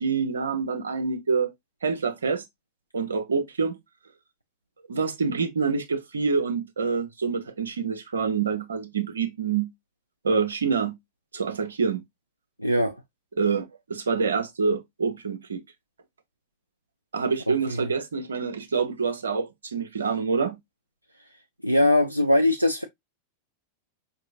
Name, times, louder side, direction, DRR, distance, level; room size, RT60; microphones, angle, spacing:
voice 1, 0.0-1.5 1.8-2.4 2.9-3.7 4.9-9.7 10.2-10.9 11.3-12.0 13.4-15.6 17.1-20.6, right 5 dB, 70° right, 0.8 m, -26 dB
voice 2, 12.6-13.0 17.5-17.9 21.6-22.8, left 1 dB, 90° right, 0.4 m, -21 dB
5.2 x 2.8 x 2.6 m
figure-of-eight pair, 90°, 0 cm